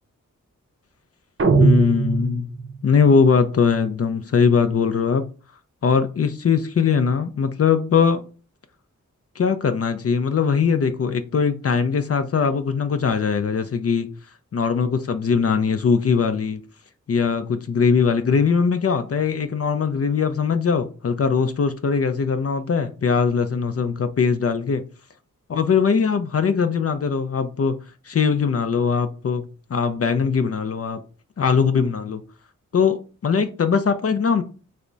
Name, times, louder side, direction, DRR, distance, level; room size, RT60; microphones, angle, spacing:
sound 1, 1.4-2.9, right 4 dB, 40° right, 0.5 m, -19 dB
voice 1, 1.6-2.5 2.8-5.2 5.8-8.2 9.4-14.1 14.5-16.6 17.1-24.8 25.5-27.8 28.1-31.0 31.4-32.2 32.7-34.4, left 6 dB, 50° left, 0.4 m, -21 dB
3.3 x 2.1 x 3.8 m
wide cardioid pair, 55°, 31 cm